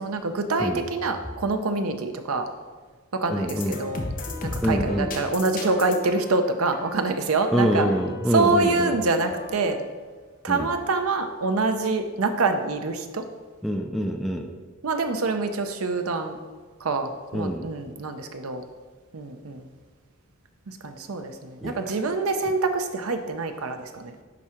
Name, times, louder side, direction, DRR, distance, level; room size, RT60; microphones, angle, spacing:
voice 1, 0.0-2.5 3.1-4.0 4.4-7.9 8.3-9.8 10.4-13.3 14.8-16.4 16.8-18.6 19.1-19.7 20.7-24.1, right 3 dB, 85° right, 7 dB, 0.7 m, -26 dB
voice 2, 3.3-3.9 4.6-5.1 7.5-9.0 10.5-10.7 13.6-14.5 17.3-17.7 21.6-21.8, equal, ahead, 2 dB, 0.4 m, -25 dB
sound 1, 3.4-9.8, left 3 dB, 40° left, 0.9 m, -36 dB
10.0 x 3.7 x 4.5 m, 1.4 s
head